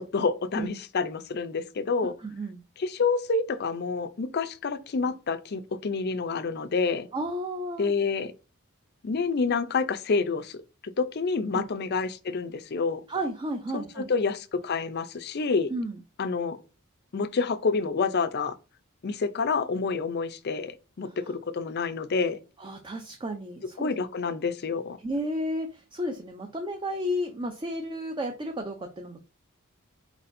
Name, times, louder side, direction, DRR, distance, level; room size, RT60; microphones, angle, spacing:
voice 1, 0.0-2.1 2.8-7.1 7.8-8.3 9.0-10.6 11.0-13.0 13.7-15.7 16.2-16.6 17.1-18.5 19.0-22.4 23.8-25.0, left 4 dB, 50° left, 0.5 m, -28 dB
voice 2, 2.2-2.6 7.1-7.9 11.5-11.6 13.1-14.1 15.7-16.0 22.6-23.9 25.0-29.2, equal, 20° right, 0.5 m, -32 dB
4.5 x 4.1 x 2.6 m
head